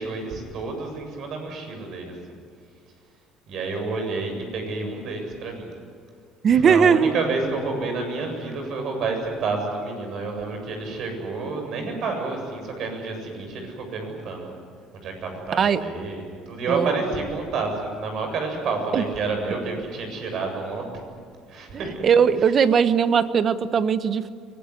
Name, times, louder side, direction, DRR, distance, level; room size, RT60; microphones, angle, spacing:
voice 1, 0.0-2.2 3.5-5.7 6.5-14.5 14.9-20.9 21.5-22.1, right 3 dB, 55° right, 4 dB, 7.7 m, -29 dB
voice 2, 6.4-7.1 15.6-15.8 16.7-16.9 18.9-19.0 22.0-24.3, right 7 dB, 40° right, 12 dB, 1.2 m, -19 dB
24.0 x 20.0 x 9.9 m, 2.2 s
cardioid pair, 110°, 0 cm